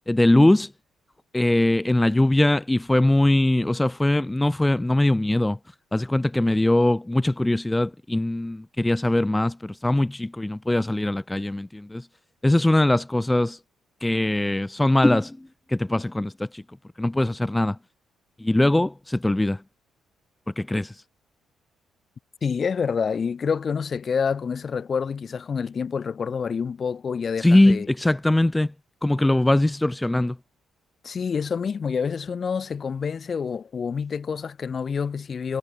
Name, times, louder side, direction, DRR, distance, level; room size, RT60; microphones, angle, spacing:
voice 1, 0.1-0.7 1.3-5.6 5.9-12.1 12.4-13.6 14.0-16.6 17.0-17.8 18.4-19.6 20.6-21.0 27.4-28.7 29.0-30.4, left 1 dB, 10° left, 0.8 m, -21 dB
voice 2, 22.4-27.9 31.0-35.6, left 6 dB, 45° left, 0.6 m, -27 dB
cardioid pair, 90°, 0 cm